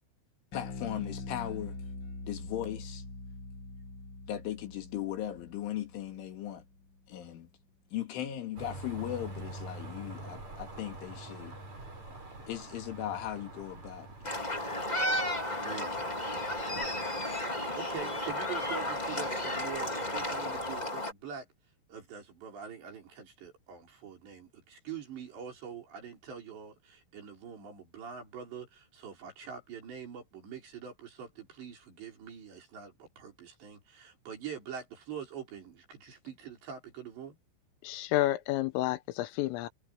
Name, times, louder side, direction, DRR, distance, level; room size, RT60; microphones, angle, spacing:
voice 1, 0.5-1.8 2.2-3.0 4.3-6.6 7.1-7.5 7.9-11.6 12.5-14.1, left 12 dB, 75° left, 5.0 m, -38 dB
Bass guitar, 0.5-7.0, left 3 dB, 45° left, 1.6 m, -44 dB
sound 1, 8.6-20.9, right 2 dB, 35° right, 9.0 m, -47 dB
sound 2, 14.2-21.1, left 1 dB, 10° left, 2.3 m, -33 dB
voice 2, 15.6-16.0 17.8-21.5 21.9-37.4, right 7 dB, 60° right, 7.5 m, -44 dB
voice 3, 37.8-39.7, left 15 dB, 90° left, 3.7 m, -30 dB
omnidirectional pair, 5.7 m